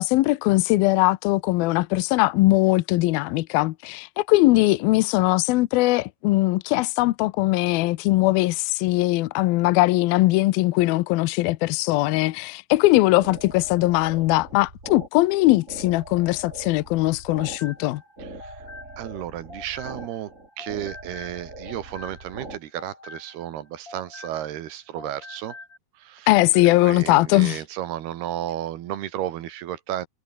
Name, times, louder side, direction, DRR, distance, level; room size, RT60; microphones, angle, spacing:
voice 1, 0.0-18.0 26.3-27.6, left 19 dB, 80° left, 2.4 m, -20 dB
sound 1, 12.8-22.6, right 2 dB, 15° right, 6.5 m, -42 dB
sound 2, 17.0-20.3 20.6-24.7 24.9-25.8, left 3 dB, 30° left, 5.6 m, -45 dB
voice 2, 18.2-18.7 19.0-20.3 20.6-25.6 26.0-26.3 26.5-30.1, right 12 dB, 80° right, 3.5 m, -33 dB
omnidirectional pair, 4.6 m